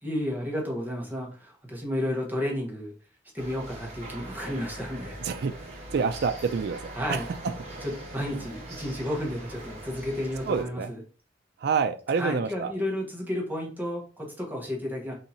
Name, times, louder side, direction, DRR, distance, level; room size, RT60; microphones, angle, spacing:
voice 1, 0.0-2.9 3.3-5.2 6.9-7.2 7.8-11.0 12.2-15.1, left 1 dB, 10° right, -1 dB, 1.1 m, -32 dB
sound 1, 3.4-10.6, right 1 dB, 35° right, 1.2 m, -42 dB
voice 2, 5.2-7.3 8.4-8.5 10.5-10.9 11.6-12.7, right 5 dB, 60° right, 8 dB, 0.4 m, -28 dB
3.6 x 2.8 x 4.1 m, 0.38 s
head